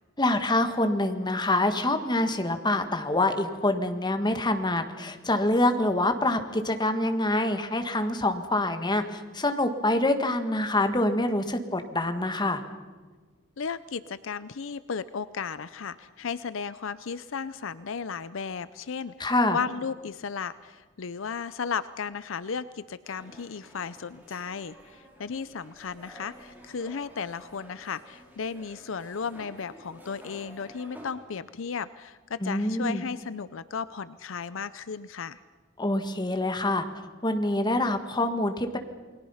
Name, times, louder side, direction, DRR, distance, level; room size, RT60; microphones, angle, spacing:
voice 1, 0.2-12.6 19.2-19.6 32.4-33.0 35.8-36.9 37.2-38.8, left 1 dB, 20° left, 7 dB, 1.7 m, -26 dB
voice 2, 13.6-35.4, left 6 dB, 70° left, 15 dB, 0.6 m, -35 dB
sound 1, 23.0-31.1, equal, 10° right, 4.9 m, -51 dB
29.0 x 21.0 x 5.7 m, 1.4 s
head